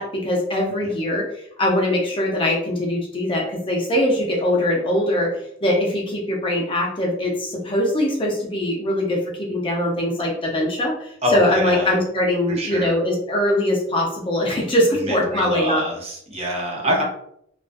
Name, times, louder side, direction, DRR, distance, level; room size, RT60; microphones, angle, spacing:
voice 1, 0.0-5.3 5.6-15.8 16.8-17.0, left 1 dB, 25° left, -1 dB, 0.5 m, -22 dB
voice 2, 11.2-11.9 12.6-12.9 14.9-17.0, equal, 30° right, -1 dB, 0.6 m, -25 dB
2.3 x 2.3 x 2.4 m, 0.72 s
head